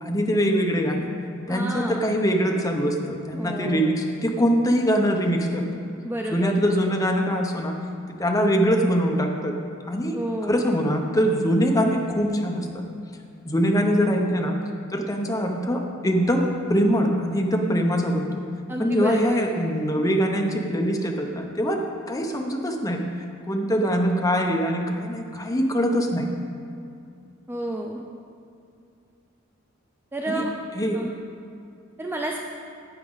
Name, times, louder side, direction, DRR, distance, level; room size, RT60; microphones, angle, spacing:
voice 1, 0.0-1.1 1.5-5.8 6.3-7.8 8.1-9.6 9.9-10.2 10.5-12.8 13.4-14.6 14.9-18.4 18.8-23.0 23.5-26.3 30.3-30.4 30.8-31.0, equal, 15° left, 2 dB, 0.8 m, -23 dB
voice 2, 1.5-2.0 3.3-3.9 6.0-6.5 10.1-10.7 18.7-19.5 27.5-28.1 30.1-30.5 30.9-31.1 32.0-32.4, right 1 dB, 10° right, 1 dB, 0.4 m, -30 dB
11.5 x 8.3 x 3.9 m, 2.4 s
head